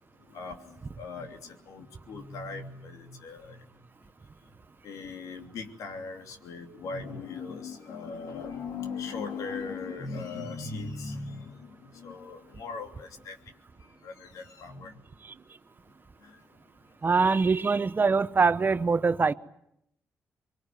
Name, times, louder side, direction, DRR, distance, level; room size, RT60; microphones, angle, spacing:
voice 1, 0.3-4.1 4.8-13.5 13.8-15.0 16.2-16.4, left 4 dB, 90° left, 2.9 m, -39 dB
voice 2, 17.0-19.3, right 4 dB, 35° right, 0.9 m, -23 dB
24.0 x 23.5 x 9.4 m
cardioid pair, 75°, 6 cm